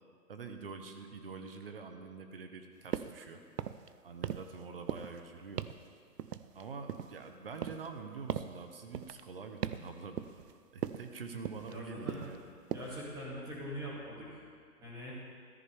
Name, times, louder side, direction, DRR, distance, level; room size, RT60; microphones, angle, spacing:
voice 1, 0.3-3.4 4.0-5.7 6.5-10.2 10.7-12.4, right 4 dB, 35° right, 6 dB, 1.0 m, -45 dB
sound 1, 2.9-3.2 3.5-3.9 4.2-4.6 4.9-5.2 5.6-5.8 6.2-7.2 7.6-7.9 8.3-8.6 8.9-9.2 9.6-9.9 10.2-10.5 10.8-11.1 11.4-11.8 12.1-12.4 12.7-13.0, right 9 dB, 75° right, 0.7 m, -39 dB
voice 2, 11.6-12.2 12.7-14.4 14.8-15.1, equal, 10° right, -8 dB, 2.3 m, -43 dB
14.0 x 14.0 x 3.5 m, 2.1 s
hypercardioid pair, 165°, 47 cm